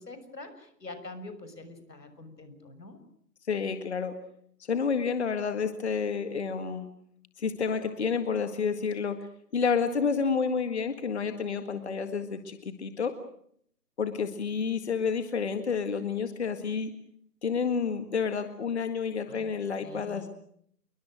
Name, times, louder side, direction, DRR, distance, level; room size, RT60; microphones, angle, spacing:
voice 1, 0.0-3.0 19.3-19.5 19.8-20.3, left 2 dB, 85° left, 10 dB, 6.7 m, -45 dB
voice 2, 3.5-4.1 4.6-6.9 7.4-9.2 9.5-13.2 14.0-16.9 17.4-20.3, left 6 dB, 40° left, 9 dB, 1.9 m, -29 dB
28.5 x 22.5 x 6.4 m, 0.66 s
figure-of-eight pair, 165°, 48 cm